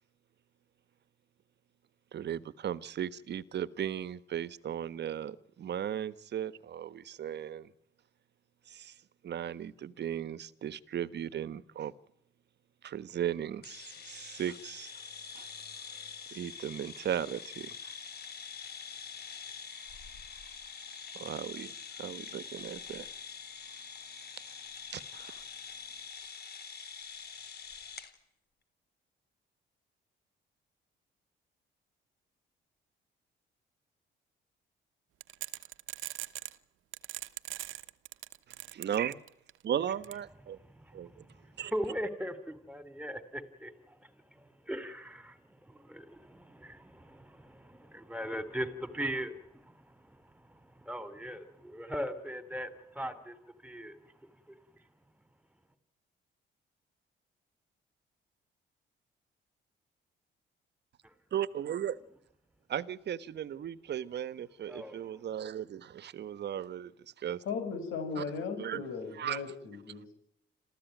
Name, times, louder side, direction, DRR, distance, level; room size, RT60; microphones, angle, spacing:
voice 1, 2.1-7.7 8.7-8.9 9.2-11.9 12.8-14.9 15.3-15.5 16.3-17.9 21.1-23.1 24.9-25.4 38.7-39.2 39.6-40.6 40.9-41.3 41.6-41.7 61.3-62.0 62.7-67.4 68.2-68.3 68.6-68.8 69.1-69.4, right 10 dB, 60° right, 1.3 m, -36 dB
sound 1, 13.6-28.1, left 6 dB, 55° left, 3.8 m, -45 dB
sound 2, 35.2-36.6 36.9-39.5 40.0-40.1, right 14 dB, 80° right, 1.1 m, -40 dB
voice 2, 40.7-44.0 44.3-53.4 53.6-54.0 54.5-54.6 64.6-65.0, equal, 5° right, 3.3 m, -40 dB
voice 3, 67.5-70.1, left 5 dB, 80° left, 7.2 m, -37 dB
27.5 x 15.0 x 9.3 m
cardioid pair, 90°, 20 cm